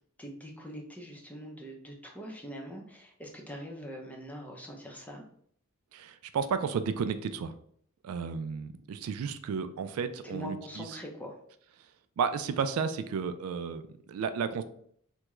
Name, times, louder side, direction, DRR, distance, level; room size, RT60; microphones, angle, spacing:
voice 1, 0.2-5.2 10.2-11.4, equal, 5° left, 0 dB, 0.5 m, -43 dB
voice 2, 5.9-7.5 8.0-10.9 12.2-14.6, right 6 dB, 85° right, 11 dB, 0.3 m, -33 dB
3.5 x 2.2 x 2.9 m, 0.63 s
head